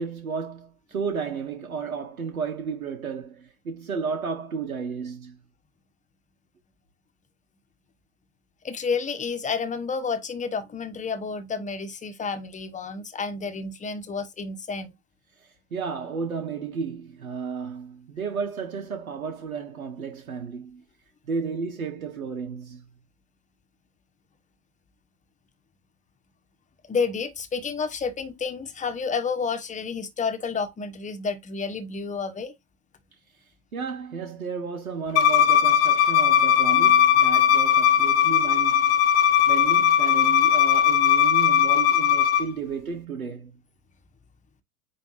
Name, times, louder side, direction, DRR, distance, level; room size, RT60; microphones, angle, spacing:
voice 1, 0.0-5.4 15.4-20.8 21.3-22.8 33.7-39.0 39.5-43.6, right 5 dB, 80° right, 1.8 m, -33 dB
voice 2, 8.6-14.9 26.9-32.5, left 5 dB, 15° left, 1.2 m, -30 dB
Bowed string instrument, 35.2-42.4, left 9 dB, 35° left, 1.0 m, -19 dB
8.9 x 3.4 x 3.2 m
hypercardioid pair, 90°, 42 cm